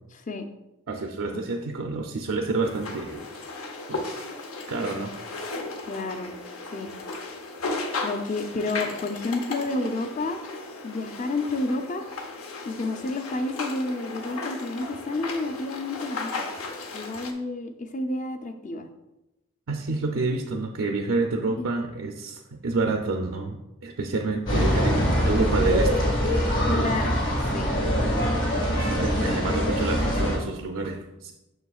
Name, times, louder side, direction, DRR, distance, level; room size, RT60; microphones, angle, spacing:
voice 1, 0.9-3.3 3.9-4.2 4.7-5.1 19.7-26.2 28.8-31.3, right 3 dB, 75° right, 2 dB, 0.5 m, -28 dB
sound 1, 2.6-17.3, left 3 dB, 85° left, 0.8 m, -35 dB
voice 2, 5.9-6.3 6.7-6.9 8.0-10.4 10.8-12.0 12.6-16.5 16.9-18.9 21.6-21.7 26.7-27.2 27.5-27.7, left 2 dB, 35° left, 7 dB, 0.5 m, -30 dB
sound 2, 24.5-30.4, equal, 65° left, 1.8 m, -23 dB
7.1 x 6.2 x 2.4 m, 0.95 s
head